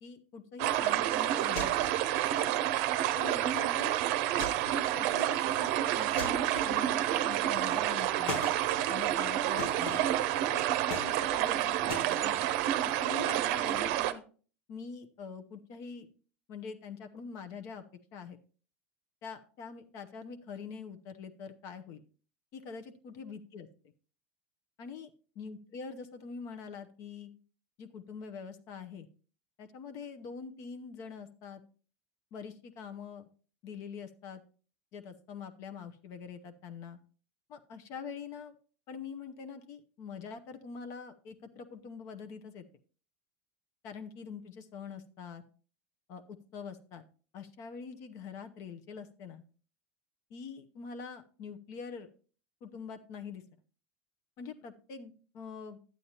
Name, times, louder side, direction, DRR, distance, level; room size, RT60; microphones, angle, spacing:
voice 1, 0.0-1.8 2.4-2.5 3.1-3.9 4.8-8.4 8.9-10.0 10.5-12.4 12.8-14.2 14.7-16.1 16.5-17.8 18.1-18.4 19.2-22.0 22.5-23.7 24.8-27.3 27.8-29.1 29.6-31.6 32.3-33.3 33.6-34.4 34.9-37.0 37.5-38.5 38.9-42.6 43.8-45.4 46.1-47.0 47.3-49.4 50.3-52.1 52.6-53.4 54.4-55.8, left 5 dB, 55° left, 9 dB, 0.8 m, -44 dB
sound 1, 0.6-14.1, right 13 dB, 60° right, 0.6 m, -29 dB
sound 2, 1.6-2.1 4.4-4.9 6.2-7.0 8.3-8.6 9.6-10.2 10.9-11.5 11.9-12.1, left 3 dB, 75° left, 1.2 m, -39 dB
10.5 x 8.5 x 2.9 m, 0.40 s
hypercardioid pair, 90°, 6 cm